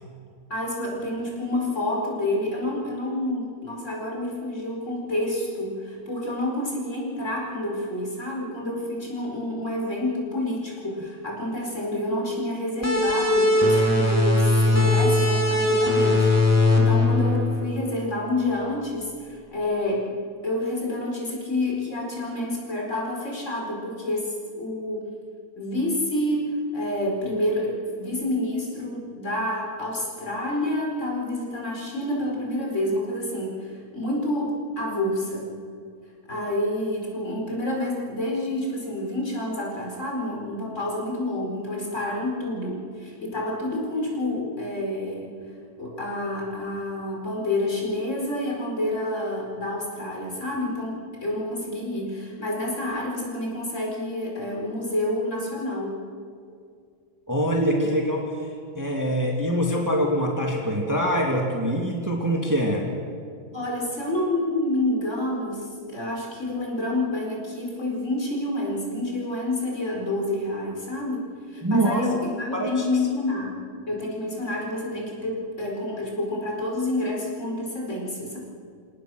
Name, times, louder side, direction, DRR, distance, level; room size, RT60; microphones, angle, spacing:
voice 1, 0.5-20.1 20.4-25.1 25.6-35.5 36.3-45.3 45.8-55.9 63.5-78.4, left 1 dB, 45° left, -2 dB, 5.0 m, -28 dB
sound 1, 12.8-18.1, left 2 dB, 10° left, 2.8 m, -20 dB
voice 2, 57.3-58.3 58.8-62.8 71.6-72.0 72.5-72.8, equal, 10° right, -1 dB, 2.2 m, -24 dB
27.5 x 18.0 x 6.3 m, 2.3 s
omnidirectional pair, 1.8 m